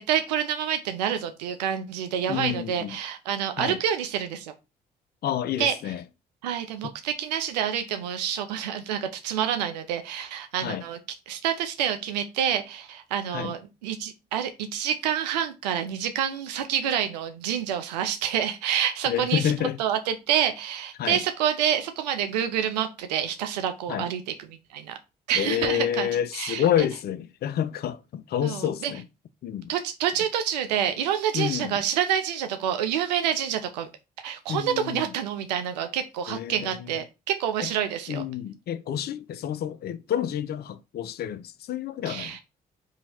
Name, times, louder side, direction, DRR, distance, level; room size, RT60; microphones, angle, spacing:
voice 1, 0.0-4.5 5.6-5.7 6.4-11.0 11.3-19.5 19.8-24.9 25.3-26.6 28.4-28.9 29.7-33.9 34.2-38.2 42.1-42.4, right 9 dB, 85° right, 0.4 m, -28 dB
voice 2, 2.3-3.0 3.6-3.8 5.2-6.0 10.6-10.8 13.3-13.5 19.1-19.8 21.0-21.2 23.9-24.1 25.3-29.0 29.4-29.7 31.3-31.7 34.5-35.0 36.3-37.0 38.1-42.4, left 10 dB, 50° left, 0.5 m, -29 dB
2.8 x 2.7 x 4.1 m
hypercardioid pair, 45°, 21 cm